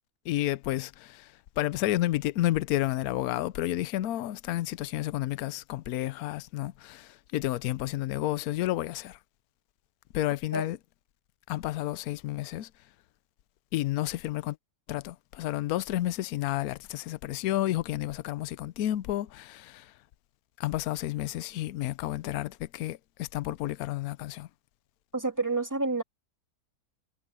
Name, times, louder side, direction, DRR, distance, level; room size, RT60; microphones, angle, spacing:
voice 1, 0.2-9.2 10.1-10.8 11.5-12.7 13.7-14.6 14.9-19.9 20.6-24.5, left 15 dB, 70° left, 1.0 m, -31 dB
voice 2, 25.1-26.0, right 3 dB, 10° right, 2.1 m, -29 dB
omnidirectional pair, 1.8 m